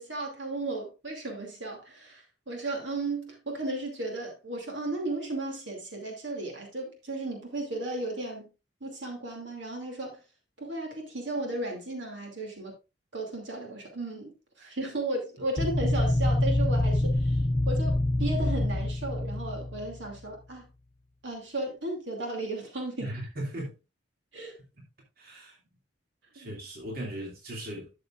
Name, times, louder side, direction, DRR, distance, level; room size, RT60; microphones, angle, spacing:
voice 1, 0.0-8.5 8.8-10.2 10.6-12.7 13.1-14.3 14.6-17.4 17.7-20.7 21.2-23.1 24.3-24.5 26.4-26.5, right 2 dB, 75° right, 2.7 m, -35 dB
sound 1, 15.6-20.2, left 1 dB, 30° left, 0.6 m, -26 dB
voice 2, 23.0-23.8 24.8-24.9 25.2-25.6 26.3-28.1, right 1 dB, 55° right, 2.5 m, -38 dB
12.5 x 6.7 x 2.5 m
head